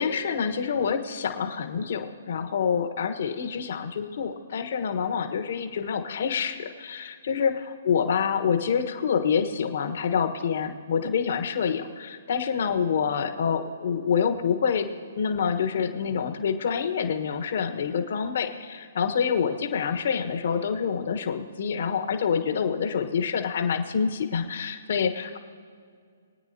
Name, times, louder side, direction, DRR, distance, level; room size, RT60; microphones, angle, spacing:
voice 1, 0.0-7.5 7.8-14.9 15.2-25.4, left 6 dB, 60° left, 6 dB, 1.2 m, -27 dB
23.5 x 9.3 x 2.8 m, 2.2 s
hypercardioid pair, 135°, 0 cm